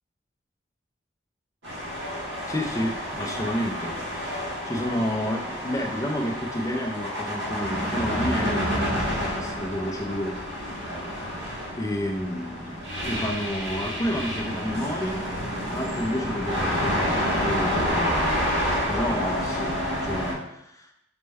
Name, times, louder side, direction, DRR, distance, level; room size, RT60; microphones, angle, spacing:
sound 1, 1.6-20.3, equal, 65° right, 1.0 m, -29 dB
voice 1, 2.5-10.4 10.9-11.0 11.8-15.3 15.6-17.1 17.4-18.5 18.9-20.9, equal, 15° left, 2 dB, 0.4 m, -30 dB
4.2 x 2.1 x 3.4 m, 0.82 s
head